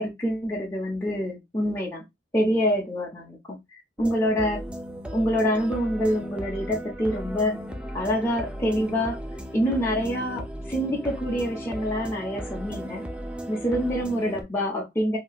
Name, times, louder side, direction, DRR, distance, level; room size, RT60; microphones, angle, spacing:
voice 1, 0.0-2.0 2.3-3.6 4.0-4.6 5.1-7.6 7.9-9.2 9.5-13.0 13.5-15.2, equal, 15° left, -4 dB, 0.9 m, -26 dB
sound 1, 4.0-14.4, equal, 5° right, 0.4 m, -36 dB
3.1 x 2.9 x 2.3 m, 0.20 s
head